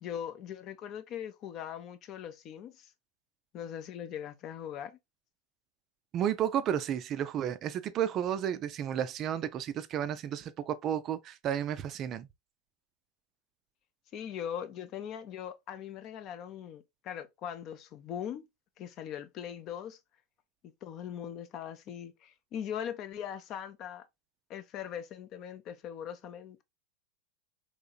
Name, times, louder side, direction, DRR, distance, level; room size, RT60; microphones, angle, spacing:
voice 1, 0.0-2.9 3.5-5.0 14.1-18.4 18.8-20.0 20.8-24.0 24.5-26.6, left 9 dB, 40° left, 0.5 m, -40 dB
voice 2, 6.1-12.3, right 10 dB, 35° right, 0.4 m, -32 dB
3.6 x 3.1 x 2.2 m
figure-of-eight pair, 85°, 0 cm